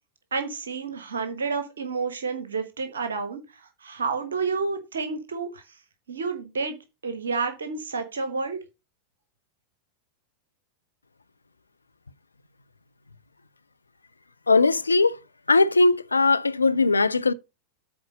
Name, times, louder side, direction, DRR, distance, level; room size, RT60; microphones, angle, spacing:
voice 1, 0.3-5.6 6.1-6.8 7.0-8.6, right 4 dB, 70° right, 1.2 m, -30 dB
voice 2, 14.5-15.2 15.5-17.3, left 3 dB, 80° left, 0.5 m, -19 dB
8.7 x 3.9 x 6.5 m
figure-of-eight pair, 90°, 0 cm